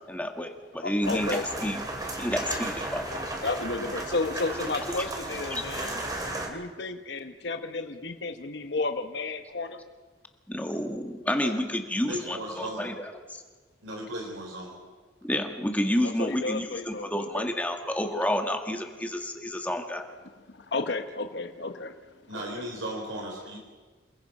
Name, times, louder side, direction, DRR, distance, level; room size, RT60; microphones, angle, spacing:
voice 1, 0.1-1.3 1.6-1.8 2.2-3.1 4.9-5.0 5.5-5.6 10.5-13.4 15.2-20.1, left 1 dB, 10° left, 4 dB, 1.6 m, -30 dB
voice 2, 0.8-1.4 3.4-6.0 6.5-9.8 16.0-17.5 20.5-21.9 22.3-22.6, left 3 dB, 60° left, 6 dB, 1.0 m, -32 dB
sound 1, 1.0-6.5, right 1 dB, 20° right, 2.6 m, -34 dB
voice 3, 12.1-12.9 13.8-14.8 22.3-23.6, right 1 dB, 80° right, 0 dB, 3.6 m, -36 dB
28.0 x 19.5 x 5.3 m, 1.4 s
head